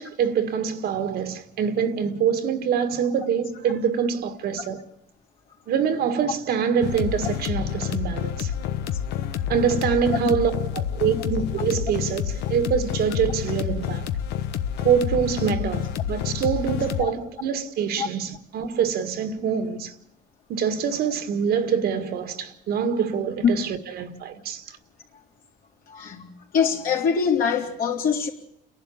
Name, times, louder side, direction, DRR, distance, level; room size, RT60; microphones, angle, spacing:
voice 1, 0.0-4.8 5.7-8.5 9.5-14.0 14.8-19.9 20.5-24.6, right 7 dB, 65° right, 1.9 m, -25 dB
sound 1, 6.8-17.0, left 9 dB, 85° left, 1.2 m, -28 dB
voice 2, 25.9-26.3 26.5-28.3, left 6 dB, 60° left, 3.9 m, -23 dB
30.0 x 11.5 x 8.5 m
cardioid pair, 110°, 17 cm